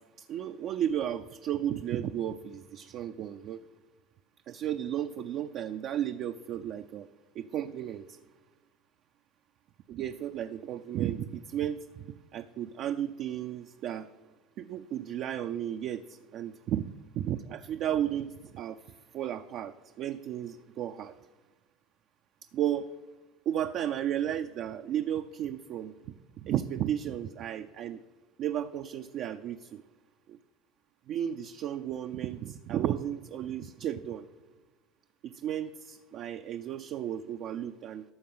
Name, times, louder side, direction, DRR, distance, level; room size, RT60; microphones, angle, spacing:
voice 1, 0.2-3.6 4.5-7.1 7.4-8.2 9.9-14.1 14.6-16.9 17.2-18.9 19.1-21.2 22.5-22.9 23.5-28.0 28.4-29.8 30.3-30.4 31.1-34.3 35.2-38.0, right 10 dB, 50° right, 8 dB, 0.4 m, -34 dB
12.5 x 6.7 x 5.5 m, 1.2 s
supercardioid pair, 110°, 0 cm